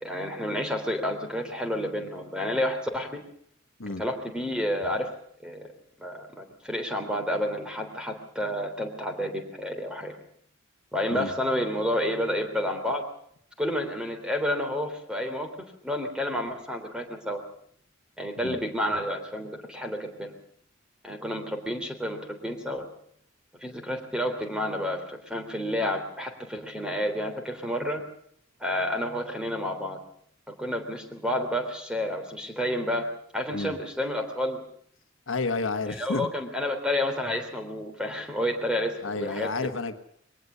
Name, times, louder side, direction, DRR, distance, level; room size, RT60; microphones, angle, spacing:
voice 1, 0.0-3.2 4.0-5.1 5.4-5.7 6.0-10.2 10.9-13.0 13.6-15.5 15.8-17.4 18.2-20.4 21.0-22.8 23.6-28.0 28.6-30.0 30.6-33.1 33.3-34.6 35.9-39.5, left 1 dB, 5° right, 4 dB, 3.4 m, -30 dB
voice 2, 35.3-36.3 39.0-39.9, left 3 dB, 75° left, 8 dB, 1.4 m, -30 dB
22.0 x 18.5 x 6.9 m, 0.66 s
head